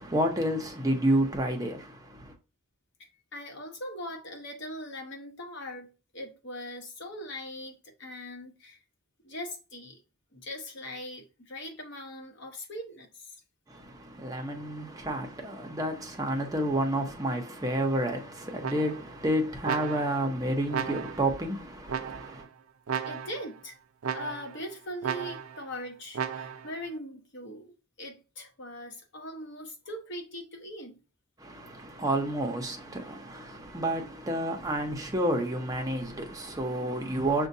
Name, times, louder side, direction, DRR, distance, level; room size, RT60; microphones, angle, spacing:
voice 1, 0.0-2.4 13.7-22.5 31.4-37.5, right 1 dB, 15° right, 0.7 m, -30 dB
voice 2, 3.3-8.8 9.2-10.0 10.3-13.4 23.0-23.8 24.1-31.0, left 1 dB, 60° left, 1.0 m, -41 dB
sound 1, 18.6-19.2 19.6-20.3 20.7-21.4 21.9-22.5 22.9-23.5 24.0-24.6 25.0-25.7 26.1-26.8, right 7 dB, 90° right, 0.5 m, -35 dB
6.3 x 2.2 x 2.7 m
head